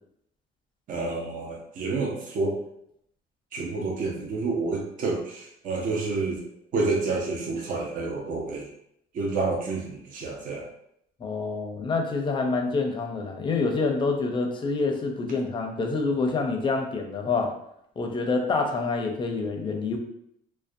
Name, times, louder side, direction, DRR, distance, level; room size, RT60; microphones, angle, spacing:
voice 1, 0.9-2.6 3.5-6.4 6.7-8.7 9.1-10.7, right 3 dB, 55° right, -1 dB, 0.5 m, -29 dB
voice 2, 11.2-17.5 18.0-20.0, left 3 dB, 30° left, 2 dB, 0.4 m, -27 dB
2.4 x 2.1 x 2.5 m, 0.74 s
cardioid pair, 110°, 17 cm